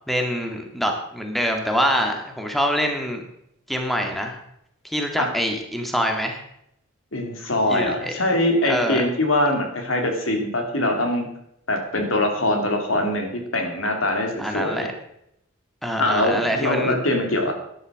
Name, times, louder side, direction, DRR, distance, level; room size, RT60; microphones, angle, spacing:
voice 1, 0.1-3.2 3.7-4.4 4.8-6.4 7.7-8.1 8.6-9.0 14.4-14.9 15.8-17.0, equal, ahead, 3 dB, 1.8 m, -25 dB
voice 2, 7.1-11.3 11.7-14.9 16.0-17.5, left 1 dB, 85° left, 4 dB, 3.0 m, -23 dB
11.0 x 11.0 x 6.4 m, 0.75 s
head